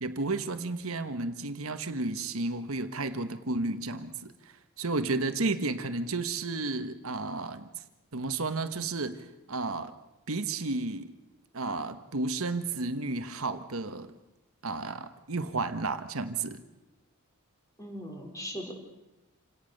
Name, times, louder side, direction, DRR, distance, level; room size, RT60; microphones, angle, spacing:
voice 1, 0.0-4.3 4.8-7.7 8.1-9.9 10.3-11.1 11.5-14.2 14.6-16.6, right 3 dB, 70° right, 8 dB, 1.3 m, -32 dB
voice 2, 17.8-18.7, equal, 15° left, 2 dB, 4.2 m, -39 dB
27.5 x 18.0 x 6.6 m, 0.97 s
head